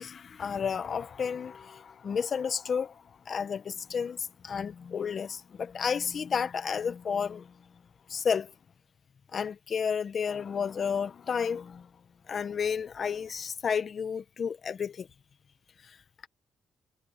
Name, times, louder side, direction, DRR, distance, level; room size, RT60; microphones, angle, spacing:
voice 1, 0.0-7.5 8.1-8.5 9.3-11.9 12.3-15.1 15.8-16.0, left 6 dB, 50° left, 1.3 m, -32 dB
cardioid pair, 90°, 0 cm